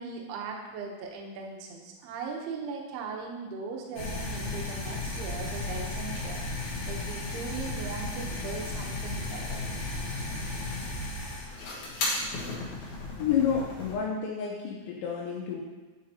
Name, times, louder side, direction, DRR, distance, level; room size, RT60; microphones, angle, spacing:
voice 1, 0.0-9.6, right 5 dB, 75° right, 0 dB, 2.4 m, -39 dB
sound 1, 3.9-13.9, left 2 dB, 65° left, 2.0 m, -34 dB
voice 2, 13.2-15.6, left 7 dB, 80° left, -3 dB, 3.0 m, -29 dB
9.7 x 5.0 x 2.8 m, 1.3 s
omnidirectional pair, 5.4 m